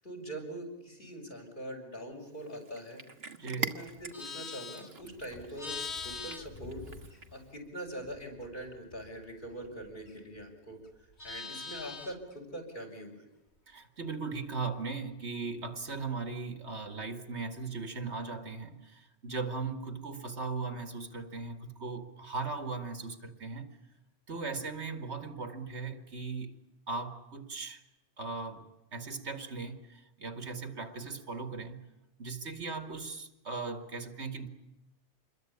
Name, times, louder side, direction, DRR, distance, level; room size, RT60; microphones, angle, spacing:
voice 1, 0.0-3.0 3.6-6.8 7.3-10.8 11.2-13.2, right 1 dB, 45° left, 3 dB, 6.7 m, -43 dB
Cat, 2.3-7.5, right 4 dB, 65° right, 1.7 m, -43 dB
Livestock farm animals working animals, 3.9-7.6 7.9-10.4 10.7-12.3, left 4 dB, 70° left, 2.2 m, -44 dB
voice 2, 13.7-23.8 24.3-26.5 26.9-27.8 28.2-31.8 32.2-34.5, right 4 dB, 80° right, 8 dB, 2.4 m, -38 dB
27.0 x 22.0 x 8.7 m, 0.94 s
omnidirectional pair, 1.1 m